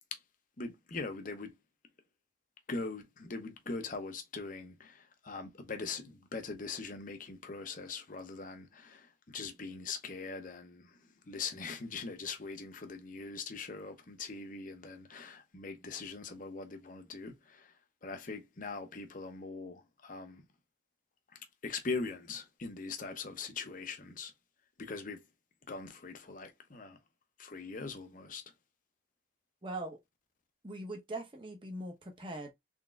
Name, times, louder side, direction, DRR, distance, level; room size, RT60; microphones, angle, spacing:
voice 1, 0.6-1.5 2.7-11.0 11.3-17.7 18.0-20.4 21.6-24.3 24.8-25.2 25.7-27.0 27.4-28.4, left 4 dB, 45° left, 0.7 m, -41 dB
voice 2, 29.6-30.0 30.6-32.5, right 2 dB, 25° right, 0.9 m, -41 dB
4.0 x 3.5 x 2.4 m
head